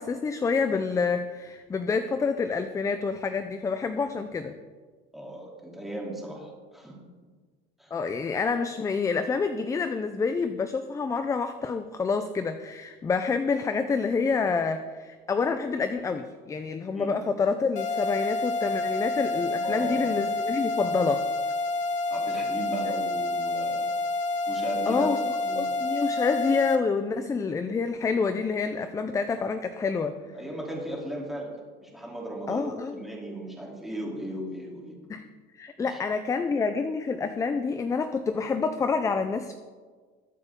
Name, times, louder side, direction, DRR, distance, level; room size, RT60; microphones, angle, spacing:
voice 1, 0.0-4.5 7.9-21.3 22.9-23.0 24.9-30.2 32.5-33.0 35.1-35.3 35.5-39.5, left 4 dB, 15° left, 9 dB, 0.5 m, -28 dB
voice 2, 5.1-7.0 7.8-7.9 16.9-17.1 19.5-20.2 22.1-23.8 24.5-25.1 25.4-25.7 30.2-31.5 31.8-35.0 35.8-36.0, right 1 dB, ahead, -3 dB, 3.1 m, -37 dB
sound 1, 17.8-26.8, left 3 dB, 40° left, 1.2 m, -28 dB
22.0 x 8.2 x 3.7 m, 1.5 s
cardioid pair, 145°, 20 cm